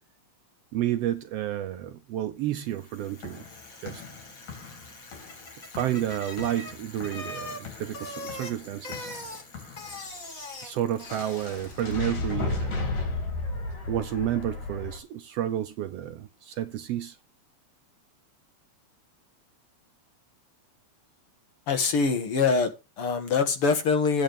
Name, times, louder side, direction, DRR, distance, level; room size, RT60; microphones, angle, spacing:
voice 1, 0.7-3.5 3.8-4.0 5.6-9.1 10.6-13.0 13.9-17.2, right 12 dB, 75° right, 1.5 m, -31 dB
Bicycle, 2.6-12.1, left 2 dB, 30° left, 2.0 m, -42 dB
sound 1, 3.0-10.0 11.0-15.0, left 3 dB, 80° left, 4.4 m, -35 dB
voice 2, 21.7-24.2, left 5 dB, 60° left, 1.9 m, -24 dB
11.0 x 9.1 x 3.4 m
omnidirectional pair, 3.3 m